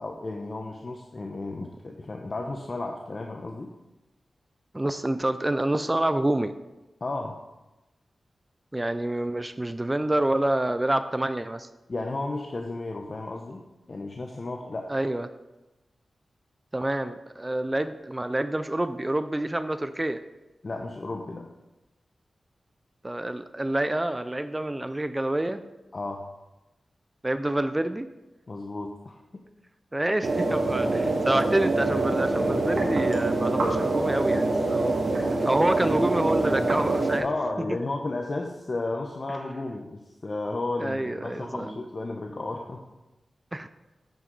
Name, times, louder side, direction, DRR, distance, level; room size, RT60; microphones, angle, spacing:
voice 1, 0.0-3.7 7.0-7.4 11.9-14.9 20.6-21.5 25.9-26.3 28.5-29.4 37.2-42.8, left 2 dB, 50° left, 2 dB, 0.9 m, -33 dB
voice 2, 4.7-6.5 8.7-11.7 14.9-15.3 16.7-20.2 23.0-25.6 27.2-28.1 29.9-35.0 35.4-37.3 40.8-41.8 43.5-43.7, right 1 dB, 20° right, 11 dB, 0.5 m, -27 dB
sound 1, 30.2-37.2, right 2 dB, 70° right, 2.2 m, -25 dB
9.1 x 8.1 x 4.0 m, 1.0 s
cardioid pair, 55°, 0 cm